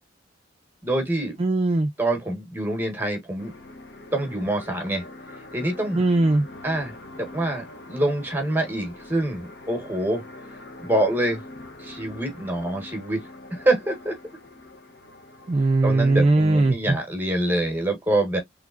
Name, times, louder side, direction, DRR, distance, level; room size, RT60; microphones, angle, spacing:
voice 1, 0.8-1.4 2.0-3.5 4.1-5.0 5.5-6.0 6.6-10.2 10.8-11.4 11.8-13.2 13.5-14.2 15.8-18.4, right 1 dB, 10° right, 1.2 m, -25 dB
voice 2, 1.4-1.9 5.9-6.5 15.5-17.0, right 2 dB, 30° right, 0.4 m, -20 dB
sound 1, 3.4-16.7, left 2 dB, 55° left, 0.9 m, -43 dB
3.6 x 3.2 x 2.4 m
head